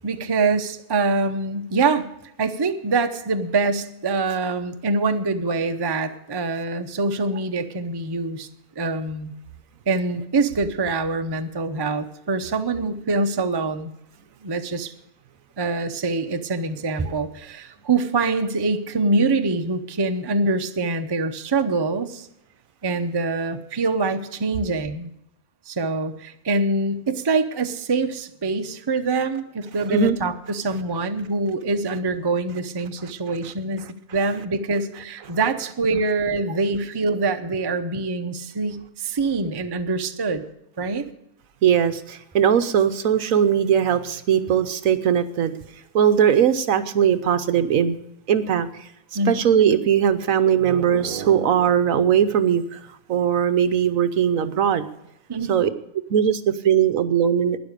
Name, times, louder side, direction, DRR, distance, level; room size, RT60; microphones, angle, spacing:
voice 1, 0.0-8.5 8.8-9.3 9.9-13.9 14.4-14.9 15.6-22.3 22.8-25.1 25.7-33.8 34.1-40.4 40.8-41.0 49.1-49.4 55.3-55.6, right 3 dB, 25° right, 7 dB, 0.5 m, -24 dB
voice 2, 41.6-45.5 45.9-48.0 48.3-48.9 49.3-52.8 53.1-54.9 55.5-55.7 56.1-57.6, right 8 dB, 65° right, 12 dB, 1.1 m, -19 dB
12.5 x 10.0 x 6.6 m, 0.83 s
omnidirectional pair, 1.6 m